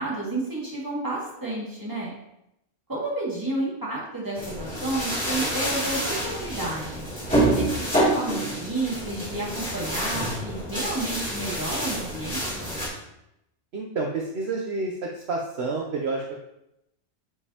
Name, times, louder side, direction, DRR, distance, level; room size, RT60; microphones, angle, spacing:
voice 1, 0.0-2.1 2.9-7.1 7.5-12.8, right 2 dB, 15° right, -6 dB, 2.1 m, -31 dB
sound 1, 4.4-12.9, right 1 dB, 5° left, 2.9 m, -27 dB
voice 2, 13.7-16.3, right 3 dB, 60° right, 0 dB, 1.0 m, -29 dB
9.7 x 5.2 x 2.9 m, 0.84 s
omnidirectional pair, 1.3 m